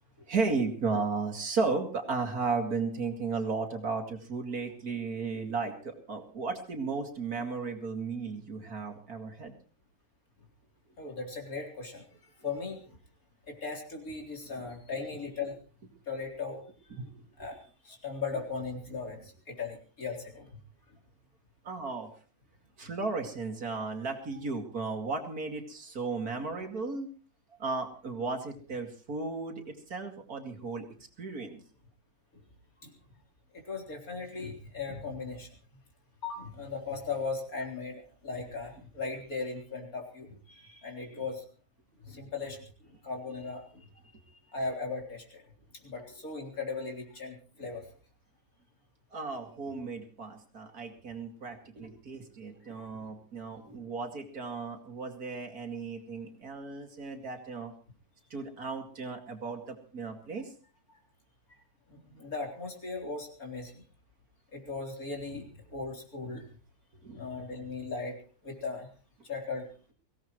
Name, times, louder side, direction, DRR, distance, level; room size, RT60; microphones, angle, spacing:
voice 1, 0.3-9.5 14.2-14.7 17.0-17.5 21.6-22.1 22.8-27.1 27.6-30.9 31.2-31.6 49.1-57.7 58.3-60.5 66.9-67.3, right 4 dB, 60° right, 4 dB, 2.9 m, -35 dB
voice 2, 11.0-12.0 12.4-13.0 13.5-15.6 16.1-16.6 17.4-20.5 32.8-32.9 33.5-35.5 36.2-41.4 42.0-42.6 43.0-43.9 44.5-45.4 45.8-47.9 52.8-52.9 61.9-63.8 64.5-66.4 67.1-68.2 68.4-68.9 69.2-69.7, left 4 dB, 55° left, 1 dB, 4.2 m, -38 dB
23.5 x 17.0 x 3.1 m, 0.38 s
omnidirectional pair, 1.8 m